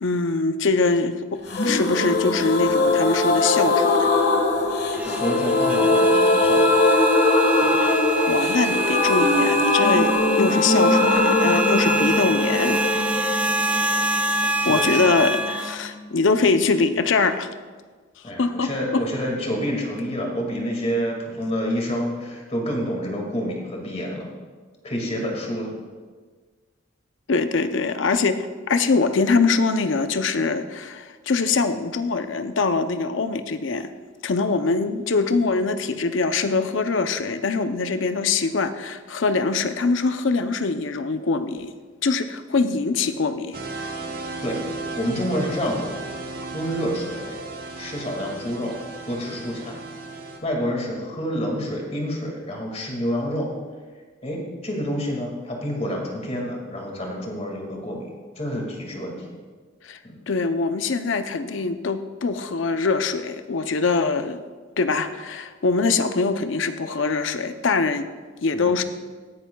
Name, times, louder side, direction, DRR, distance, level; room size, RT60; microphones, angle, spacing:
voice 1, 0.0-4.1 7.8-12.8 14.6-17.5 18.4-19.0 27.3-33.9 34.2-41.7 42.0-43.5 59.8-60.0 60.3-64.4 64.8-68.1 68.4-68.8, left 4 dB, 75° left, 9 dB, 0.6 m, -23 dB
sound 1, 1.5-15.1 15.4-15.5 15.7-15.8, left 2 dB, 55° left, 1.5 m, -20 dB
sound 2, 4.9-15.7, right 2 dB, 5° right, 0.3 m, -26 dB
voice 2, 5.1-6.8 7.6-7.8 14.6-15.2 18.2-24.3 24.8-25.7 44.4-44.6 45.0-45.9 46.5-47.3 47.8-48.7 49.1-49.8 50.4-53.5 54.2-59.3 60.0-60.2 68.5-68.8, equal, 35° left, 0 dB, 2.1 m, -28 dB
sound 3, 43.5-50.4, right 3 dB, 50° right, 1.2 m, -35 dB
17.5 x 10.0 x 2.3 m, 1.5 s
head